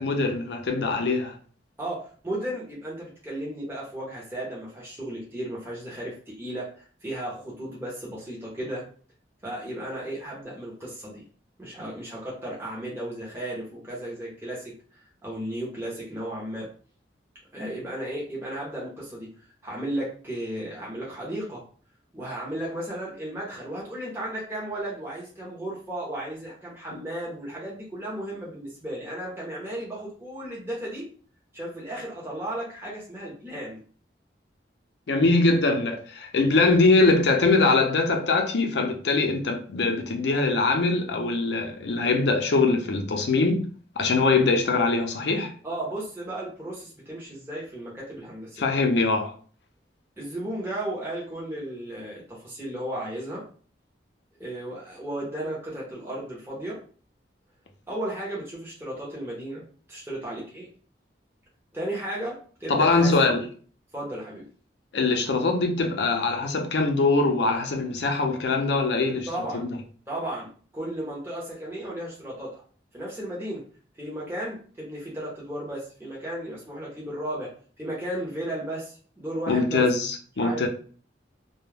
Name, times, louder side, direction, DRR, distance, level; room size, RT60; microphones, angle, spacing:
voice 1, 0.0-1.3 35.1-43.7 44.0-45.5 48.6-49.3 62.7-63.4 64.9-69.3 69.5-69.7 79.5-80.7, left 3 dB, 70° left, 0.5 m, -22 dB
voice 2, 1.8-8.9 9.4-11.2 11.6-16.7 17.5-19.3 19.6-21.6 22.1-31.1 31.5-33.8 45.6-48.7 50.2-53.4 54.4-56.8 57.9-59.6 59.9-60.7 61.7-63.3 63.9-64.4 69.3-69.6 70.1-72.6 72.9-73.6 74.0-77.5 77.8-79.9 80.4-80.7, right 1 dB, 15° right, 0.7 m, -34 dB
2.2 x 2.1 x 3.2 m
head